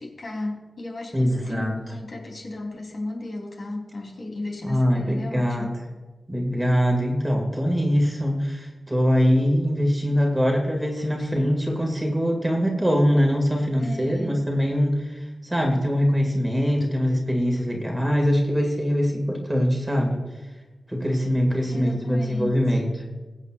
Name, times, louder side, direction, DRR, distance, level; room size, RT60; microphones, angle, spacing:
voice 1, 0.0-5.8 11.2-11.3 13.8-14.5 21.7-22.8, left 2 dB, 60° left, -1 dB, 3.3 m, -35 dB
voice 2, 1.1-1.8 4.6-5.7 6.3-20.2 20.9-22.9, equal, 10° right, 1 dB, 2.0 m, -23 dB
21.5 x 8.3 x 2.4 m, 1.2 s
wide cardioid pair, 100°, 0 cm